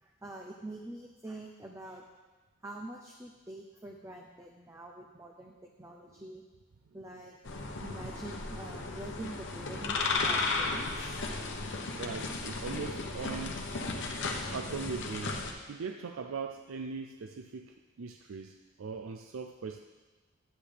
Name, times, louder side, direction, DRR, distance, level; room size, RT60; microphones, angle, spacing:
voice 1, 0.0-2.0 2.6-6.4 6.9-7.4 7.8-11.2, right 1 dB, 15° right, 0 dB, 0.6 m, -45 dB
sound 1, 7.4-15.5, left 3 dB, 60° left, 0.9 m, -35 dB
voice 2, 12.0-13.6 14.5-19.8, right 5 dB, 90° right, 5 dB, 0.4 m, -40 dB
11.0 x 9.1 x 3.4 m, 1.3 s
head